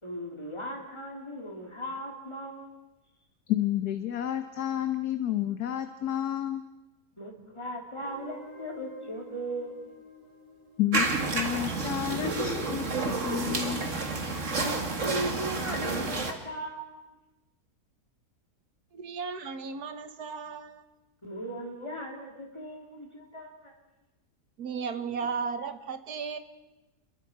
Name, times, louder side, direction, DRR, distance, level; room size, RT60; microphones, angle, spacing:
voice 1, 0.0-2.8 7.2-9.9 14.6-17.0 21.2-23.8, right 1 dB, 20° left, 0 dB, 3.6 m, -38 dB
voice 2, 3.5-6.6 10.8-11.1 11.3-13.8, left 11 dB, 80° left, 8 dB, 1.5 m, -30 dB
Guitar, 8.0-12.9, left 2 dB, 65° left, 4.6 m, -49 dB
sound 1, 10.9-16.3, right 3 dB, 50° right, 2.3 m, -30 dB
voice 3, 18.9-20.8 24.6-26.4, right 5 dB, 80° right, 9 dB, 1.8 m, -35 dB
29.5 x 22.0 x 4.7 m, 1.0 s
omnidirectional pair, 1.6 m